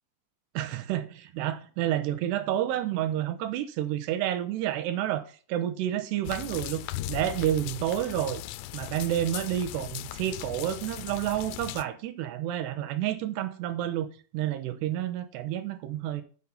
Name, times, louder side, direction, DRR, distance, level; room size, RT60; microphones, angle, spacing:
voice 1, 0.5-8.4 8.7-14.1 14.3-16.2, right 12 dB, 80° right, 2.9 m, -30 dB
sound 1, 6.2-11.8, left 16 dB, 85° left, 2.7 m, -38 dB
9.1 x 6.0 x 5.6 m
omnidirectional pair, 4.9 m